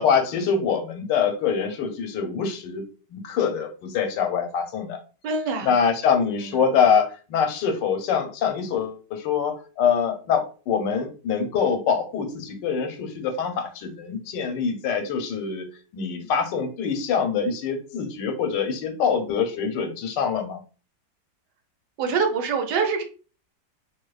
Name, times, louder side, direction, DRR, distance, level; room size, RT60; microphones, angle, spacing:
voice 1, 0.0-2.8 3.1-5.0 5.6-15.7 15.9-20.6, left 6 dB, 85° left, 6 dB, 1.3 m, -24 dB
voice 2, 5.2-5.7 22.0-23.0, right 5 dB, 75° right, 5 dB, 1.2 m, -24 dB
4.0 x 2.6 x 2.3 m, 0.36 s
omnidirectional pair, 1.9 m